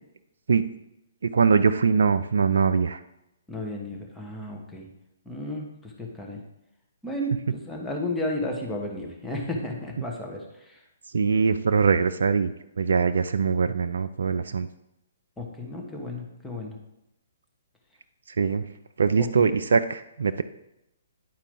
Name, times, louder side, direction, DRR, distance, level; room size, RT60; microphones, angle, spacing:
voice 1, 1.2-3.0 11.1-12.5 12.8-14.7 18.4-18.6 19.0-20.4, right 5 dB, 70° right, 10 dB, 0.3 m, -22 dB
voice 2, 3.5-4.9 5.2-6.4 7.0-10.8 15.4-16.8 19.2-19.5, left 1 dB, 5° left, -1 dB, 1.4 m, -33 dB
10.5 x 4.5 x 3.8 m, 0.86 s
figure-of-eight pair, 130°, 0 cm